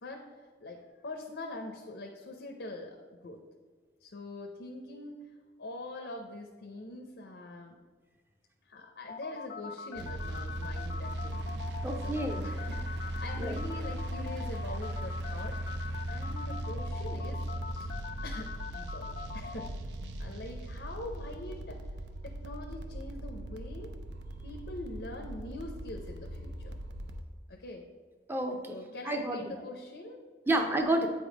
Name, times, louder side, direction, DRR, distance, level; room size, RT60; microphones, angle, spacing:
voice 1, 0.0-3.4 4.0-5.3 5.6-7.8 8.6-11.5 12.0-12.1 12.4-15.6 16.1-17.4 17.7-17.9 18.2-19.7 20.2-21.8 22.2-23.9 24.4-26.8 27.5-27.9 28.7-30.6, left 2 dB, 75° left, 3 dB, 0.7 m, -43 dB
sound 1, 9.1-19.7, left 6 dB, 50° left, 0.3 m, -43 dB
sound 2, 10.0-27.2, right 1 dB, 70° right, 0.5 m, -38 dB
voice 2, 11.8-12.5 13.4-13.6 28.3-28.8 29.0-29.4 30.5-31.1, right 1 dB, 10° right, 4 dB, 0.5 m, -30 dB
8.2 x 3.7 x 4.9 m, 1.5 s
head